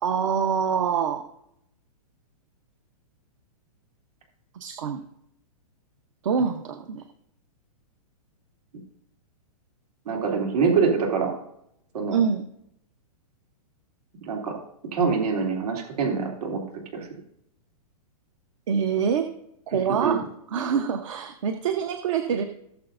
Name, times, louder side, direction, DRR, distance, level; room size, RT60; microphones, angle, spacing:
voice 1, 0.0-1.3 4.5-5.0 6.2-7.0 12.1-12.5 18.7-19.3 19.7-20.2 20.5-22.4, right 7 dB, 55° right, 6 dB, 1.0 m, -25 dB
voice 2, 10.1-11.4 11.9-12.2 14.3-14.5 14.9-16.6 16.9-17.1 20.0-20.2, right 5 dB, 80° right, 0 dB, 3.1 m, -24 dB
18.0 x 7.1 x 2.6 m, 0.75 s
hypercardioid pair, 175°, 19 cm